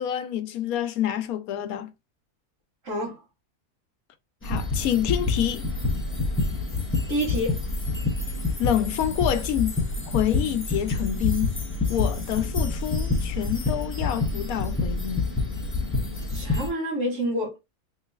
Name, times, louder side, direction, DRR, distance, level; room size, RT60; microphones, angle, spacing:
voice 1, 0.0-1.9 4.4-5.7 8.6-9.7 10.1-11.6 11.9-15.3, left 10 dB, 90° left, 1.1 m, -27 dB
voice 2, 2.8-3.2 7.1-7.6 16.3-17.6, equal, 65° right, 1.9 m, -28 dB
sound 1, 4.4-16.7, left 3 dB, 10° left, 0.6 m, -27 dB
3.9 x 3.6 x 2.3 m
omnidirectional pair, 1.5 m